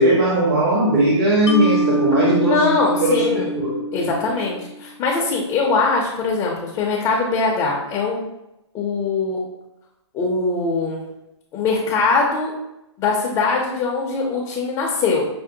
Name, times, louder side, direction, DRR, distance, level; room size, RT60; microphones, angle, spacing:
voice 1, 0.0-3.8, right 1 dB, 50° right, -6 dB, 1.0 m, -18 dB
Mallet percussion, 1.5-4.7, right 1 dB, 75° left, 0.5 m, -24 dB
voice 2, 2.4-3.5 3.9-8.3 8.7-9.4 10.1-11.0 11.5-12.5 13.0-15.2, left 4 dB, 20° left, -1 dB, 0.5 m, -21 dB
5.9 x 2.0 x 2.7 m, 0.91 s
hypercardioid pair, 140°, 15 cm